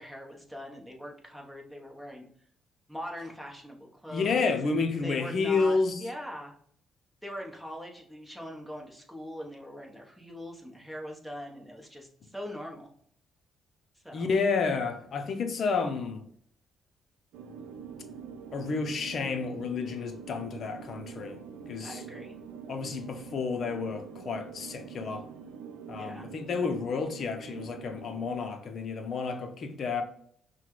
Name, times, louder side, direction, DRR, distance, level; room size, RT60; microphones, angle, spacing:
voice 1, 0.0-2.3 2.9-6.5 7.2-12.9 14.0-14.3 21.8-22.4 26.0-26.3, equal, ahead, 1.0 m, -42 dB
voice 2, 4.1-6.0 14.1-16.2 18.5-21.4 21.7-22.0 22.7-25.2 25.9-30.0, left 4 dB, 55° left, 0.6 m, -30 dB
sound 1, 17.3-28.4, right 6 dB, 85° right, 0.4 m, -45 dB
5.7 x 2.2 x 3.1 m
cardioid pair, 90°, 0 cm